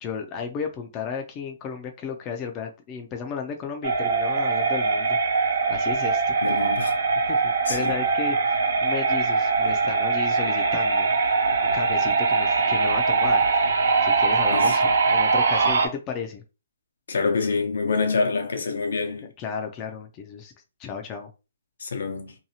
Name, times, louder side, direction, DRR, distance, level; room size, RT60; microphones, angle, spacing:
voice 1, 0.0-5.2 5.7-6.7 7.2-11.1 11.7-13.6 14.0-16.4 19.4-20.5 20.8-21.3, left 6 dB, 25° left, 0.4 m, -34 dB
sound 1, 3.8-15.9, right 4 dB, 80° right, 0.7 m, -22 dB
voice 2, 6.4-7.0 7.7-7.9 14.5-14.8 17.1-19.3 21.8-22.4, left 4 dB, 80° left, 0.7 m, -26 dB
2.7 x 2.3 x 2.8 m
hypercardioid pair, 155°, 0 cm